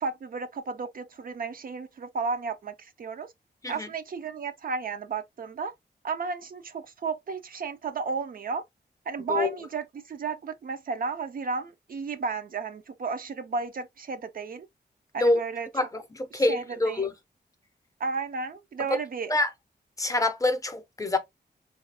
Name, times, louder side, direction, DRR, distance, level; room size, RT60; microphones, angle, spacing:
voice 1, 0.0-3.3 3.7-5.7 6.0-8.6 9.1-14.7 15.1-15.7 16.3-17.1 18.0-19.3, right 4 dB, 55° right, 0.4 m, -33 dB
voice 2, 15.7-17.1 18.9-19.0 19.3-19.5 20.0-21.2, left 2 dB, 20° left, 0.5 m, -26 dB
3.9 x 2.4 x 2.8 m
wide cardioid pair, 160°, 18 cm